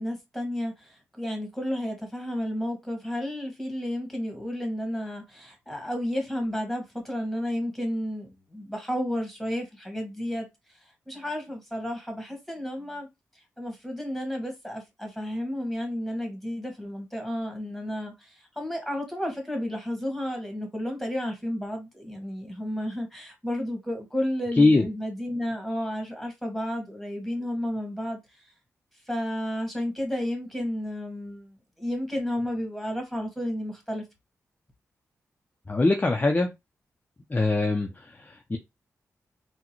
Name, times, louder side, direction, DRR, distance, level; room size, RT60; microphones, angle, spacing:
voice 1, 0.0-13.1 13.6-28.5 29.1-34.0, equal, ahead, 1.8 m, -32 dB
voice 2, 24.6-24.9 35.7-36.5 37.3-38.6, left 2 dB, 30° left, 0.6 m, -22 dB
3.6 x 2.2 x 3.0 m
supercardioid pair, 45°, 6 cm